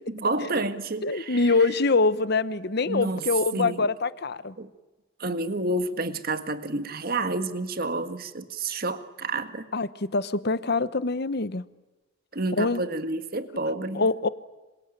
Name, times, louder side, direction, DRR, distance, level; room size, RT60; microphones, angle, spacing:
voice 1, 0.1-1.5 2.9-3.3 3.5-3.9 4.6-4.7 5.2-9.7 12.3-14.1, right 2 dB, 50° right, 10 dB, 1.7 m, -29 dB
voice 2, 1.0-4.5 9.7-11.6 12.6-12.8 13.9-14.3, left 3 dB, 55° left, 15 dB, 1.0 m, -24 dB
27.0 x 23.5 x 9.0 m, 1.1 s
head